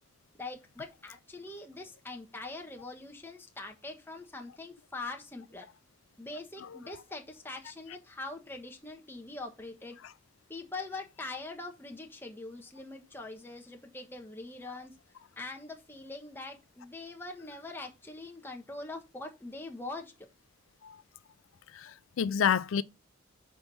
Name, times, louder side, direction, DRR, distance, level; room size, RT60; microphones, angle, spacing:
voice 1, 0.4-5.7 6.2-10.0 10.5-15.0 15.4-20.3, left 2 dB, 10° left, 1.2 m, -43 dB
voice 2, 21.7-22.8, left 8 dB, 90° left, 0.4 m, -29 dB
6.1 x 4.6 x 5.3 m
head